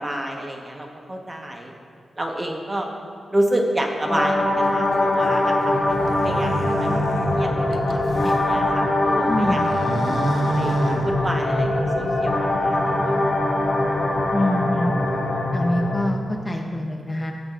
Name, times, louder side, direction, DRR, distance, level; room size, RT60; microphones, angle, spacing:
voice 1, 0.0-1.7 2.2-2.9 3.3-7.0 7.3-9.6 10.6-13.2, right 1 dB, 20° right, 1 dB, 1.1 m, -29 dB
sound 1, 4.0-16.0, left 1 dB, 40° left, 2.2 m, -22 dB
sound 2, 5.8-8.4 8.9-11.7, right 2 dB, 65° right, 0.7 m, -29 dB
voice 2, 9.3-9.7 14.3-14.9 15.5-17.3, left 1 dB, 20° left, 2 dB, 0.7 m, -25 dB
16.5 x 7.3 x 2.5 m, 2.3 s
wide cardioid pair, 100°, 0 cm